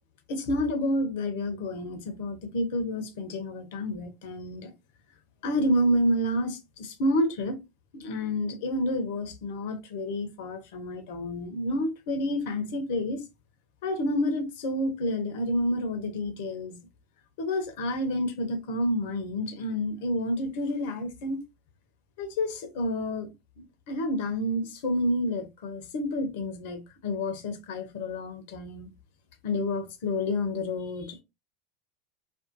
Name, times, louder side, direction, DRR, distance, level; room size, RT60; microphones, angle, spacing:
voice 1, 0.3-4.7 5.4-7.6 7.9-13.2 13.8-16.8 17.4-21.4 22.2-23.3 23.6-28.9 29.4-31.2, left 1 dB, 60° left, 0.8 m, -29 dB
2.6 x 2.4 x 2.5 m
figure-of-eight pair, 80°, 0 cm